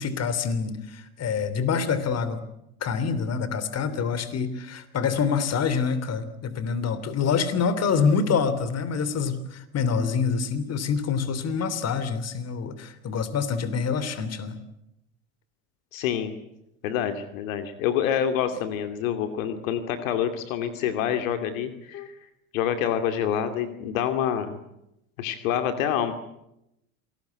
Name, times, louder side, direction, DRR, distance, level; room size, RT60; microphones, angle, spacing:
voice 1, 0.0-2.4 2.8-14.6 21.9-22.1, left 6 dB, 35° left, 14 dB, 3.2 m, -26 dB
voice 2, 15.9-16.3 16.8-22.1 22.5-24.6 25.2-26.1, left 9 dB, 65° left, 8 dB, 2.6 m, -27 dB
27.5 x 19.5 x 9.4 m, 0.86 s
hypercardioid pair, 85°, 43 cm